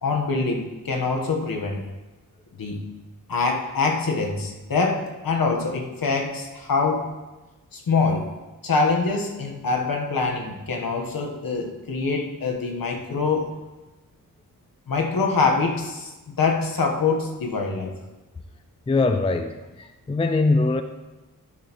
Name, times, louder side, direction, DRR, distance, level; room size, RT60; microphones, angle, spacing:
voice 1, 0.0-1.8 2.6-2.8 3.3-7.1 7.7-8.3 8.6-13.5 14.9-17.9, left 4 dB, 85° left, 1 dB, 1.2 m, -24 dB
voice 2, 18.9-20.8, left 3 dB, 20° left, 7 dB, 0.3 m, -22 dB
11.0 x 6.2 x 3.0 m, 1.1 s
wide cardioid pair, 125°, 34 cm